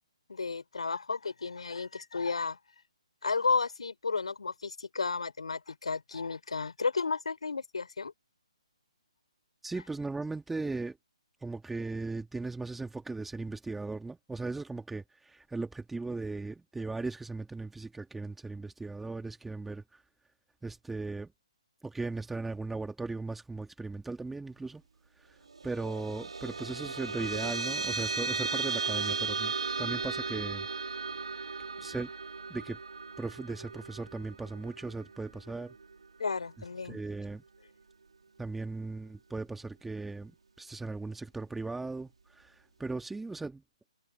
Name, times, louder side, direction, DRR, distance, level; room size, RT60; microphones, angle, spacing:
voice 1, 0.3-2.6 3.2-8.1 36.2-37.0, left 4 dB, 75° left, 3.1 m, -33 dB
voice 2, 9.6-11.0 11.4-20.0 20.6-21.3 21.8-24.8 25.2-25.4 25.6-29.5 29.8-30.7 31.8-32.1 32.5-32.8 33.2-35.7 36.8-37.4 38.4-40.3 40.6-43.6, right 3 dB, 5° right, 1.5 m, -37 dB
sound 1, 25.5-36.3, right 4 dB, 75° right, 2.4 m, -36 dB
figure-of-eight pair, 140°, 3 cm